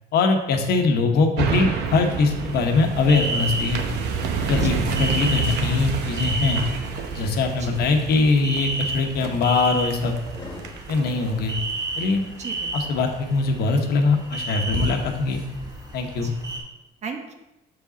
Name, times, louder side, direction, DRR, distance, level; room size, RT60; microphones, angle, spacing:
voice 1, 0.1-3.8 4.4-6.6 7.1-10.2 10.9-11.6 12.0-12.2 12.7-15.4 15.9-16.3, left 3 dB, 70° left, 4 dB, 1.0 m, -22 dB
sound 1, 1.4-12.8 13.3-13.4, right 6 dB, 80° right, 0.8 m, -30 dB
sound 2, 1.9-16.6, right 2 dB, 20° right, 1.9 m, -33 dB
voice 2, 4.6-4.9 7.6-7.8 12.4-12.9 16.2-16.4 17.0-17.3, right 5 dB, 40° right, 4 dB, 1.1 m, -36 dB
sound 3, 6.1-6.4 6.9-8.5 9.1-10.8, left 3 dB, 25° left, 1.4 m, -43 dB
6.8 x 4.9 x 4.0 m, 0.98 s
cardioid pair, 110°, 17 cm